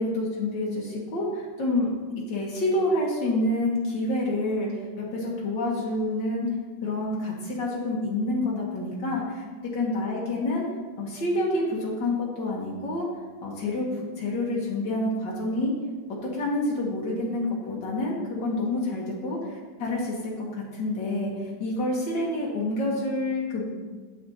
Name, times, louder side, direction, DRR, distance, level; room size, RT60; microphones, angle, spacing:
voice 1, 0.0-2.0 2.3-6.5 6.8-9.4 9.7-10.6 11.0-13.1 13.4-15.7 16.2-23.7, left 1 dB, 80° left, -4 dB, 1.9 m, -28 dB
8.9 x 7.6 x 2.8 m, 1.4 s
omnidirectional pair, 1.9 m